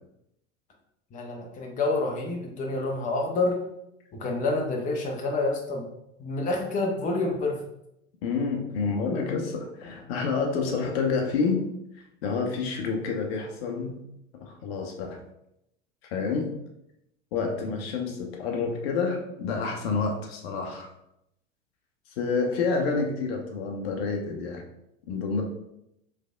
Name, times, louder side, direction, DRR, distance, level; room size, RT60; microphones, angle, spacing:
voice 1, 1.1-3.6 4.1-5.9 6.2-7.6 17.5-17.6, left 2 dB, 20° left, 0 dB, 0.7 m, -28 dB
voice 2, 8.2-11.7 12.2-14.0 14.4-15.2 16.1-16.5 17.3-20.9 22.2-24.6 25.1-25.4, left 4 dB, 55° left, 2 dB, 0.8 m, -28 dB
4.9 x 3.3 x 2.2 m, 0.81 s
figure-of-eight pair, 80°, 37 cm